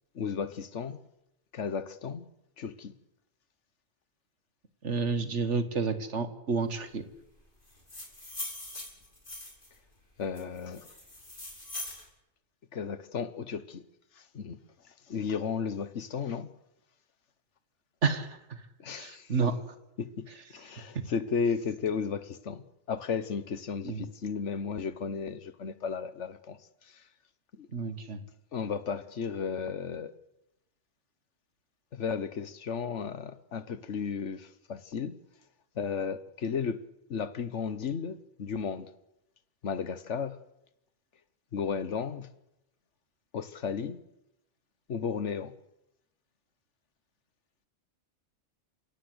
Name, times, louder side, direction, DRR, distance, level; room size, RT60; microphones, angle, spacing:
voice 1, 0.1-1.0 1.5-2.3 2.6-2.9 10.2-10.9 12.7-13.8 14.2-14.6 15.1-16.5 18.8-19.3 20.0-20.3 20.5-26.6 26.9-27.0 27.6-27.7 28.5-30.1 31.9-35.2 35.7-36.8 37.1-38.9 39.6-40.4 41.5-42.3 43.3-44.0 44.9-45.5, left 6 dB, 85° left, 1.5 m, -34 dB
voice 2, 4.8-7.0 18.0-18.4 19.0-19.5 23.8-24.0 27.7-28.2, right 4 dB, 85° right, 2.0 m, -30 dB
sound 1, 7.7-9.7 10.3-12.0, left 1 dB, 50° left, 5.5 m, -41 dB
28.5 x 17.0 x 8.0 m
omnidirectional pair, 1.2 m